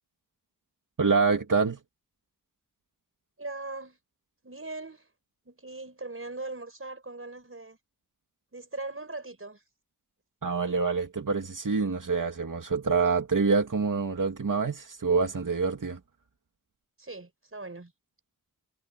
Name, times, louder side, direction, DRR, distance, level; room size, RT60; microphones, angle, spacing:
voice 1, 1.0-1.8 10.4-16.0, right 4 dB, 80° right, 2.4 m, -26 dB
voice 2, 3.4-4.0 4.4-5.1 5.5-7.8 8.5-9.6 17.0-17.9, right 2 dB, 45° right, 5.4 m, -40 dB
wide cardioid pair, 55°, 32 cm